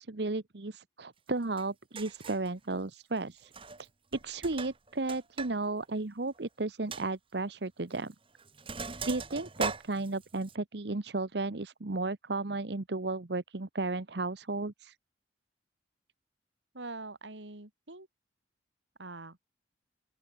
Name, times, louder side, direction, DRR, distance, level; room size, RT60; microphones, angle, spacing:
voice 1, 0.0-3.5 3.8-3.9 4.2-8.1 9.0-14.9, right 3 dB, 65° right, 1.0 m, -34 dB
Sink (filling or washing), 1.6-1.7 1.9-2.5 3.4-3.9 4.1-5.5 5.8-5.9 6.3-6.4 6.9-7.0 7.9-8.1 8.4-10.5, right 4 dB, 30° right, 2.7 m, -39 dB
voice 2, 16.7-18.1 19.0-19.4, right 2 dB, 85° right, 3.2 m, -44 dB
open air
head